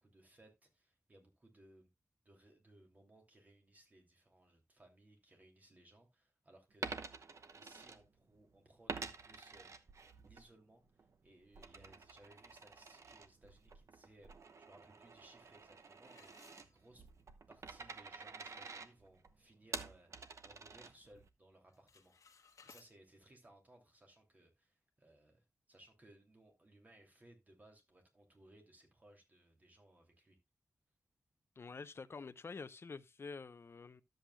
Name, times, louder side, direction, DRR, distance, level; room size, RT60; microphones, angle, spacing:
voice 1, 0.0-1.9 2.2-6.9 7.5-9.9 10.2-14.3 14.6-17.0 17.5-20.1 20.4-30.4, right 1 dB, 30° right, 2.8 m, -64 dB
Coin (dropping), 6.7-8.4 8.9-10.5 10.8-21.3, right 4 dB, 65° right, 0.9 m, -49 dB
sound 1, 16.0-17.3 17.8-17.9 18.4-18.5 18.9-19.2 19.6-20.8 21.0-21.4 21.6-22.9, left 5 dB, 80° left, 1.2 m, -64 dB
voice 2, 31.6-34.0, left 4 dB, 50° left, 0.7 m, -48 dB
13.0 x 7.8 x 2.3 m
wide cardioid pair, 115°, 6 cm